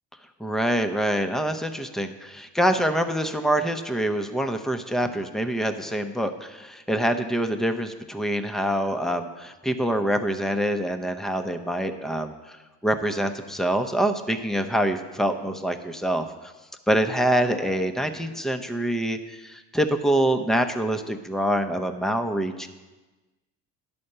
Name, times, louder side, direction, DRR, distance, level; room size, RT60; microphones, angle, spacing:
voice 1, 0.4-12.3 12.8-16.3 16.9-19.2 19.4-22.7, right 1 dB, ahead, 7 dB, 0.7 m, -25 dB
11.0 x 4.3 x 6.7 m, 1.2 s
supercardioid pair, 80°, 41 cm